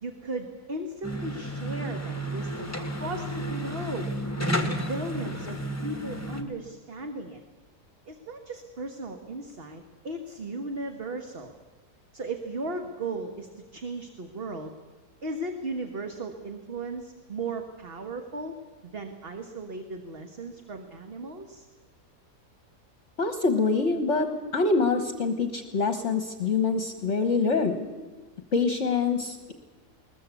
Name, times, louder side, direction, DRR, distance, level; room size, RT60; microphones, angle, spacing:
voice 1, 0.0-2.7 3.0-7.4 8.1-11.5 12.1-14.7 15.2-18.5 18.8-21.7, right 2 dB, 40° right, 5 dB, 1.5 m, -36 dB
sound 1, 1.0-6.4, right 1 dB, 10° left, 1.5 m, -32 dB
voice 2, 23.2-27.9 28.5-29.5, left 4 dB, 50° left, 8 dB, 1.4 m, -25 dB
21.0 x 20.0 x 8.3 m, 1.3 s
omnidirectional pair, 1.7 m